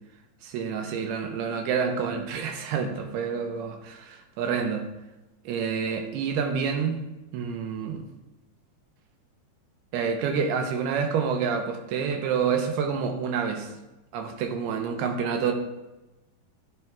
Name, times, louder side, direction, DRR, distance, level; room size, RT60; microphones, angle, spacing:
voice 1, 0.4-4.9 5.5-7.0 7.3-8.1 9.9-13.7 14.1-15.5, right 6 dB, 80° right, 4 dB, 2.8 m, -28 dB
14.5 x 9.1 x 2.4 m, 1.0 s
omnidirectional pair, 4.7 m